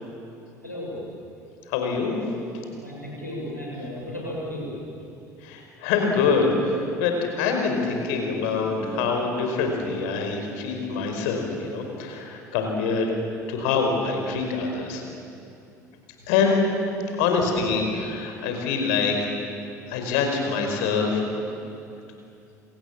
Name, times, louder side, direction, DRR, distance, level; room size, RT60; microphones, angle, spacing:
voice 1, 0.6-1.0 2.8-4.7 8.4-9.0, left 1 dB, 90° left, -3 dB, 7.1 m, -35 dB
voice 2, 1.7-2.2 5.4-13.1 13.5-15.0 16.3-16.7 17.2-19.3 19.9-21.2, left 4 dB, 60° left, 3 dB, 5.1 m, -25 dB
29.5 x 26.5 x 7.5 m, 2.6 s
figure-of-eight pair, 60°, 9 cm